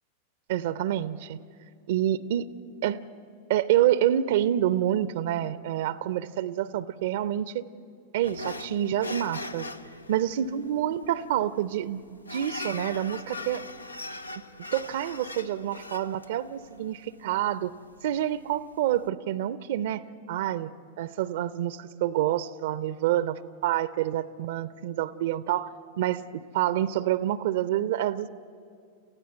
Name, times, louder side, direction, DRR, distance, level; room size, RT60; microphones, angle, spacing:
voice 1, 0.5-1.4 1.9-2.5 2.8-3.0 3.5-7.6 8.1-9.7 10.1-13.6 14.7-17.0 17.2-17.7 18.0-20.0 20.3-25.7 26.0-28.3, right 12 dB, 55° right, 17 dB, 0.6 m, -27 dB
sound 1, 8.2-19.1, left 2 dB, 80° left, 0.6 m, -41 dB
28.5 x 15.5 x 7.7 m, 2.4 s
figure-of-eight pair, 90°, 0 cm